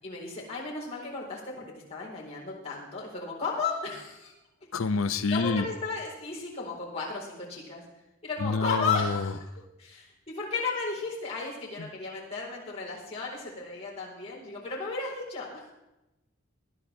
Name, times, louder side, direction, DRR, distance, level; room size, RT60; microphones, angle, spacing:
voice 1, 0.0-4.3 5.3-7.8 8.2-9.5 9.8-15.7, left 4 dB, 30° left, -5 dB, 4.4 m, -34 dB
voice 2, 4.7-5.7 8.4-9.2, left 4 dB, 85° left, 12 dB, 0.7 m, -27 dB
19.5 x 11.5 x 3.5 m, 0.95 s
head